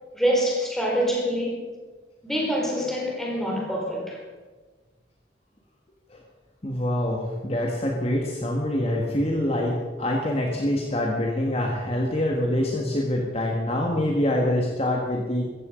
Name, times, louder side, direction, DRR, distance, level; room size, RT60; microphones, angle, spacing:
voice 1, 0.1-1.6 2.2-4.2, equal, ahead, -3 dB, 4.5 m, -25 dB
voice 2, 6.6-15.4, left 1 dB, 35° left, 0 dB, 1.7 m, -25 dB
15.0 x 14.5 x 5.2 m, 1.4 s
head